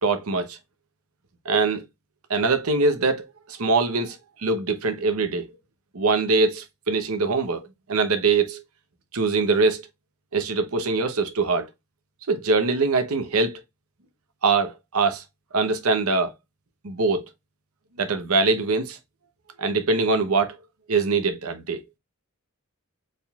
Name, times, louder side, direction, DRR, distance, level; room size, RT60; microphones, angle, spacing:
voice 1, 0.0-0.6 1.4-1.8 2.3-5.5 5.9-8.6 9.1-9.8 10.3-11.7 12.3-13.6 14.4-15.2 15.5-16.3 16.8-17.2 18.0-19.0 19.6-20.6 20.9-21.8, right 3 dB, 75° right, 0.8 m, -23 dB
4.5 x 3.7 x 2.3 m
head